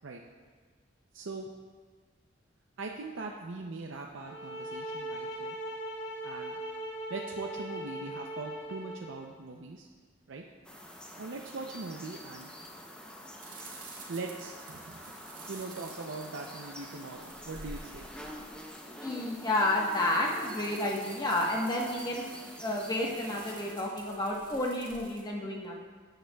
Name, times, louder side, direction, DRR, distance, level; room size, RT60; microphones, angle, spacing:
voice 1, 1.1-1.5 2.8-5.6 6.2-6.6 7.1-9.9 10.3-10.4 11.2-12.5 14.1-15.0 15.5-18.1, right 3 dB, 75° right, 1 dB, 0.6 m, -41 dB
sound 1, 4.2-9.2, right 1 dB, 65° left, 1.4 m, -39 dB
sound 2, 10.6-23.7, equal, 5° left, 0.6 m, -47 dB
sound 3, 13.4-25.2, right 3 dB, 40° right, 1.7 m, -51 dB
voice 2, 19.0-22.2 22.6-25.8, left 1 dB, 20° left, -2 dB, 1.1 m, -30 dB
13.5 x 8.9 x 2.3 m, 1.5 s
head